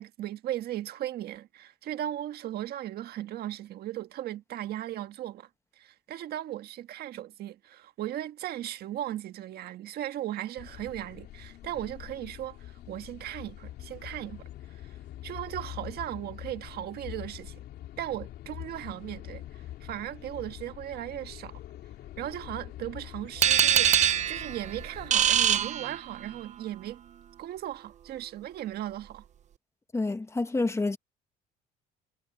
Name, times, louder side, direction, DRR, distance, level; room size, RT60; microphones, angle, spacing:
voice 1, 0.0-5.5 5.7-17.6 18.0-21.6 22.2-27.0 27.4-29.2, right 13 dB, 70° right, 1.7 m, -37 dB
sound 1, 10.6-25.7, left 13 dB, 70° left, 3.0 m, -44 dB
sound 2, 23.4-26.4, right 9 dB, 45° right, 0.7 m, -24 dB
voice 2, 29.9-31.0, left 3 dB, 15° left, 1.5 m, -28 dB
cardioid pair, 110°, 17 cm